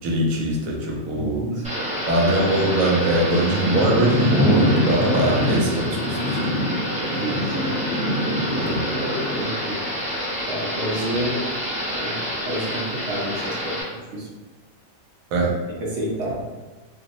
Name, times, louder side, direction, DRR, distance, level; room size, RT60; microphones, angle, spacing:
voice 1, 0.0-1.5 2.1-6.6 8.6-8.8 15.3-15.5, right 1 dB, 80° right, -1 dB, 1.0 m, -22 dB
voice 2, 1.1-1.6 7.1-7.8 8.5-9.8 10.5-11.4 12.0-12.1 12.5-13.7 14.1-14.3 15.3-15.5 15.9-16.4, equal, 65° right, -4 dB, 0.8 m, -29 dB
Thunder / Rain, 1.6-13.8, left 1 dB, 10° right, 0.4 m, -25 dB
2.6 x 2.0 x 2.8 m, 1.2 s
omnidirectional pair, 1.4 m